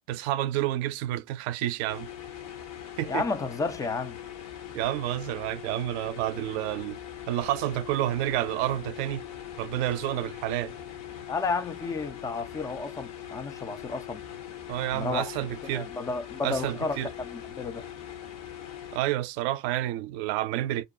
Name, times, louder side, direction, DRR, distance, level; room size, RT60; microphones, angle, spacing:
voice 1, 0.1-2.1 3.0-3.2 4.7-7.0 7.3-9.2 9.6-10.7 14.7-15.9 16.4-17.1 18.9-20.8, right 14 dB, 60° right, 0.5 m, -29 dB
sound 1, 1.9-19.0, left 10 dB, 45° left, 0.7 m, -41 dB
voice 2, 3.1-4.2 11.3-14.2 14.9-15.3 15.6-17.9, left 4 dB, 10° left, 0.3 m, -32 dB
2.5 x 2.2 x 3.8 m
hypercardioid pair, 80°, 36 cm